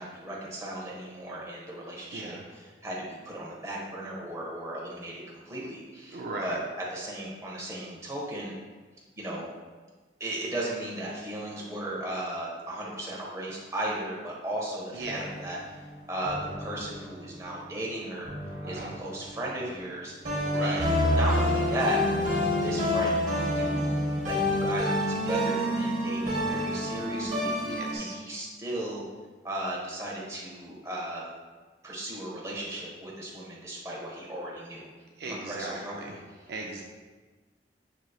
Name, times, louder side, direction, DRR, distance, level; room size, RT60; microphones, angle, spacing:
voice 1, 0.0-6.6 6.9-8.5 9.2-9.4 10.2-18.3 18.7-20.1 20.6-22.0 22.6-24.0 24.2-27.6 28.0-29.0 29.4-31.2 31.8-34.9 35.2-36.0, right 1 dB, 15° right, -5 dB, 0.8 m, -36 dB
voice 2, 2.1-2.4 6.1-6.6 14.9-15.3 18.6-19.0 20.5-20.8 27.6-28.2 35.2-36.2 36.5-36.8, right 2 dB, 60° right, 0 dB, 0.4 m, -37 dB
sound 1, 15.0-17.5 18.2-19.8 20.2-28.0, left 1 dB, 40° right, 1.0 m, -29 dB
sound 2, 20.8-24.5, equal, 80° right, 0.8 m, -31 dB
6.4 x 3.0 x 2.3 m, 1.4 s
head